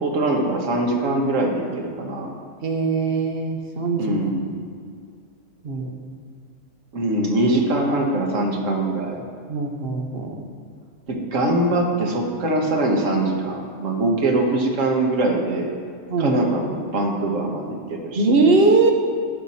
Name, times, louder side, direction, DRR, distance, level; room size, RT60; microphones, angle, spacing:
voice 1, 0.0-2.3 4.0-4.5 6.9-9.2 11.1-15.7 16.2-18.5, right 2 dB, 85° right, 1 dB, 1.6 m, -22 dB
voice 2, 2.6-4.1 5.6-5.9 9.5-10.4 16.1-16.4 18.2-18.9, right 3 dB, 50° right, 3 dB, 1.1 m, -20 dB
11.5 x 5.9 x 4.2 m, 2.2 s
omnidirectional pair, 1.3 m